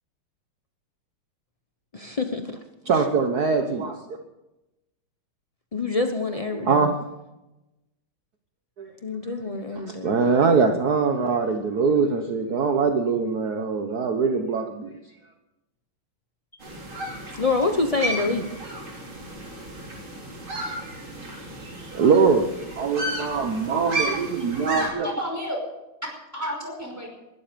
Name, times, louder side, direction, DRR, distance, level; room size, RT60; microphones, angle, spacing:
voice 1, 1.9-2.6 2.9-3.0 5.7-7.0 9.0-10.1 17.3-18.5, left 3 dB, 60° left, 5 dB, 0.3 m, -26 dB
voice 2, 2.8-4.2 6.5-6.9 8.8-8.9 9.4-15.0 21.9-25.1, right 5 dB, 50° right, 5 dB, 1.5 m, -23 dB
sound 1, 16.6-24.9, right 1 dB, 65° right, 4.5 m, -33 dB
voice 3, 24.8-25.6 26.0-27.1, equal, 5° right, 1 dB, 5.2 m, -31 dB
21.5 x 12.5 x 5.2 m, 0.96 s
omnidirectional pair, 2.4 m